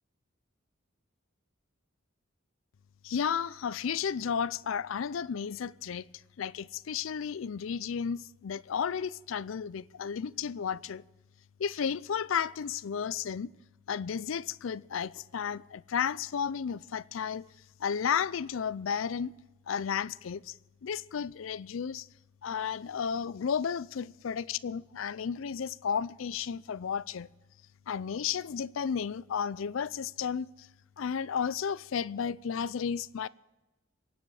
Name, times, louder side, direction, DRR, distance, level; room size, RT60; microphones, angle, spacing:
voice 1, 3.0-6.1 6.4-11.0 11.6-13.5 13.9-17.5 17.8-19.4 19.7-22.1 22.4-27.3 27.9-30.7 31.0-33.3, left 7 dB, 75° left, 0.4 m, -33 dB
23.0 x 9.3 x 4.8 m
head